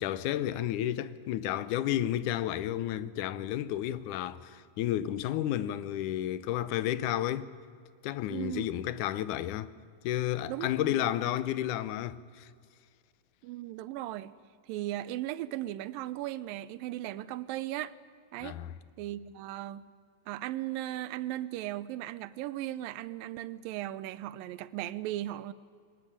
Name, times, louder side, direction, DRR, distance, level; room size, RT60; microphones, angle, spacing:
voice 1, 0.0-7.5 8.0-9.7 10.0-12.5 18.4-18.7, left 12 dB, 75° left, 2.1 m, -32 dB
voice 2, 8.3-8.7 10.5-11.1 13.4-14.3 14.7-17.9 18.3-18.6 19.0-19.9 20.3-25.5, right 14 dB, 85° right, 2.5 m, -37 dB
22.5 x 19.5 x 9.9 m
omnidirectional pair, 4.0 m